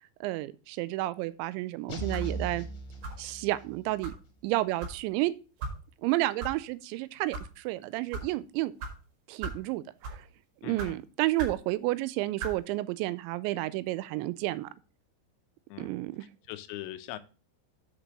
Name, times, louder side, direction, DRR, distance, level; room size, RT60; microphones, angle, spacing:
voice 1, 0.2-2.7 3.2-4.1 4.4-5.3 6.0-8.7 9.3-10.2 10.6-14.7 15.8-16.3, right 18 dB, 85° right, 2.8 m, -31 dB
sound 1, 1.9-3.8, right 2 dB, 60° left, 3.3 m, -37 dB
sound 2, 2.1-2.4 3.0-3.3 4.0-4.2 4.8-5.0 5.6-5.8 6.4-6.5 7.1-7.5 8.1-8.3 8.8-8.9 9.4-9.6 10.0-10.3 10.8-10.9 11.4-11.6 12.4-12.6, right 4 dB, 55° right, 2.8 m, -37 dB
voice 2, 10.6-11.0 15.7-15.9 16.5-17.2, left 14 dB, 80° left, 3.0 m, -40 dB
6.7 x 5.2 x 6.0 m
omnidirectional pair, 5.3 m